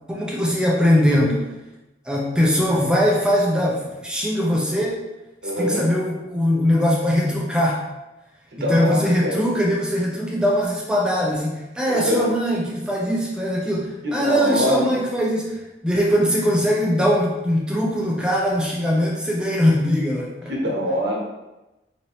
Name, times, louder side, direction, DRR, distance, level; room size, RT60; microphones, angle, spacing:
voice 1, 0.1-1.5 2.0-5.0 5.6-7.8 8.6-20.5, equal, 5° right, -3 dB, 0.6 m, -21 dB
voice 2, 5.4-5.9 8.5-9.5 11.9-12.3 14.0-15.0 20.5-21.2, equal, 65° right, -2 dB, 1.1 m, -24 dB
5.1 x 2.9 x 3.1 m, 1.0 s
head